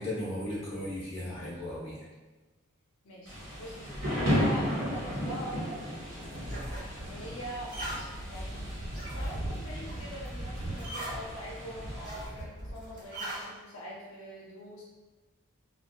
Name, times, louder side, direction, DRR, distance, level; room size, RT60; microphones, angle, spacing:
voice 1, 0.0-2.1, left 1 dB, 25° left, -8 dB, 0.9 m, -36 dB
voice 2, 3.0-5.9 7.0-7.8 8.2-8.7 9.1-14.8, right 1 dB, 85° left, -4 dB, 0.5 m, -43 dB
Thunder / Rain, 3.2-12.3, equal, 70° right, 1.0 m, -35 dB
sound 1, 6.0-13.5, right 1 dB, 40° right, 1.0 m, -39 dB
2.7 x 2.3 x 2.2 m, 1.2 s
head